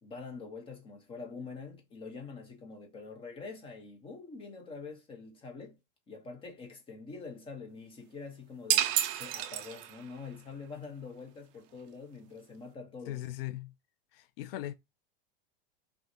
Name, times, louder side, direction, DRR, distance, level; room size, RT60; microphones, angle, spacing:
voice 1, 0.0-5.8 6.1-13.2, left 4 dB, 15° left, 1.0 m, -45 dB
sound 1, 8.7-10.2, right 11 dB, 35° right, 0.4 m, -30 dB
voice 2, 13.1-13.7 14.1-14.7, left 14 dB, 70° left, 0.6 m, -39 dB
5.9 x 2.4 x 2.7 m
supercardioid pair, 160°, 30 cm